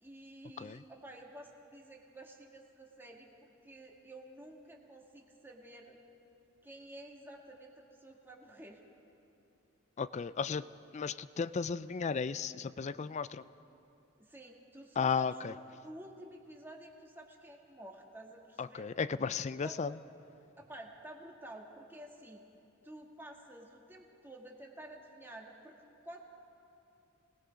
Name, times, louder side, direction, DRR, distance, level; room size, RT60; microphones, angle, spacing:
voice 1, 0.0-6.0 6.6-8.8 14.2-18.9 19.6-19.7 20.6-22.4 22.8-25.8 26.0-26.3, right 1 dB, 10° right, 0 dB, 1.7 m, -51 dB
voice 2, 10.0-10.7 10.9-13.4 15.0-15.5 18.6-20.0, left 5 dB, 35° left, 15 dB, 0.4 m, -34 dB
27.0 x 19.5 x 5.2 m, 2.8 s
head